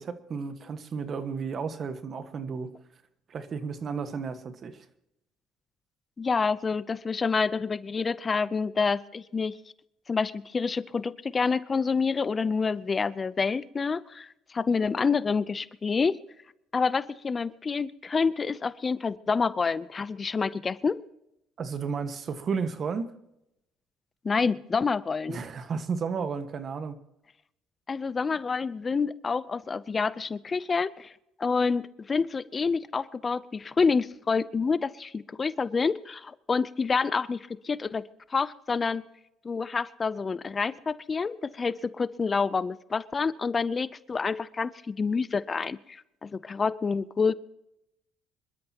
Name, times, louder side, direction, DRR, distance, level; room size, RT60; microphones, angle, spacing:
voice 1, 0.0-2.7 3.3-4.9 21.6-23.1 25.3-27.0, right 5 dB, 45° right, 10 dB, 1.5 m, -33 dB
voice 2, 6.2-9.6 10.1-16.2 16.7-21.0 24.2-25.4 27.9-31.1 31.4-38.0 38.3-39.0 39.4-47.3, left 5 dB, 30° left, 17 dB, 0.6 m, -28 dB
26.5 x 13.0 x 2.9 m, 0.84 s
cardioid pair, 95°, 0 cm